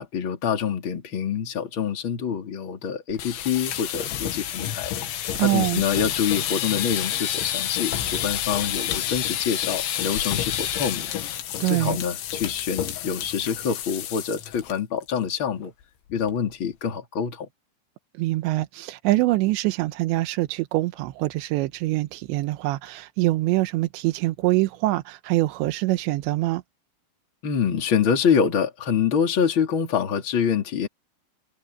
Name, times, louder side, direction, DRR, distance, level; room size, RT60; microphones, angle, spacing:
voice 1, 0.0-4.9 5.4-11.1 11.6-15.7 16.1-17.5 27.4-30.9, left 7 dB, 30° left, 3.1 m, -26 dB
sound 1, 3.1-14.7 15.0-15.3 15.6-15.7 16.1-16.5, left 11 dB, 90° left, 4.2 m, -29 dB
voice 2, 5.4-5.8 11.6-12.0 18.2-26.6, right 18 dB, 85° right, 3.1 m, -24 dB
omnidirectional pair, 5.2 m